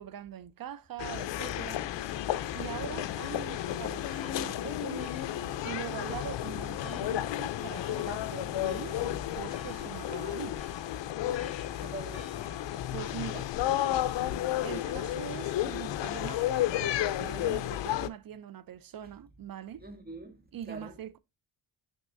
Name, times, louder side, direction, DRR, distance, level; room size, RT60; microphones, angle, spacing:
voice 1, 0.0-1.9 2.5-5.1 5.6-10.6 12.9-13.5 14.6-19.8 20.5-21.2, right 10 dB, 50° right, 0.6 m, -42 dB
sound 1, 1.0-18.1, left 12 dB, 65° left, 0.6 m, -32 dB
Church bell, 1.3-16.4, left 6 dB, 45° left, 2.8 m, -52 dB
voice 2, 9.8-10.6 11.8-12.3 14.5-14.6 19.8-20.9, right 2 dB, 20° right, 1.7 m, -45 dB
6.4 x 5.9 x 2.6 m
cardioid pair, 95°, 47 cm